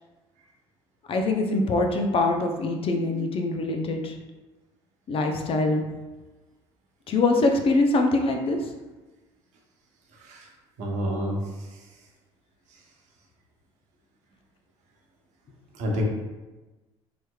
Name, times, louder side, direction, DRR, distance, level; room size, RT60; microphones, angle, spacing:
voice 1, 1.1-4.2 5.1-5.9 7.1-8.6, left 2 dB, 45° left, 4 dB, 0.5 m, -23 dB
voice 2, 10.1-10.5 10.8-11.7 15.7-16.0, equal, 65° right, -1 dB, 0.8 m, -29 dB
3.3 x 3.0 x 2.3 m, 1.2 s
hypercardioid pair, 65°, 13 cm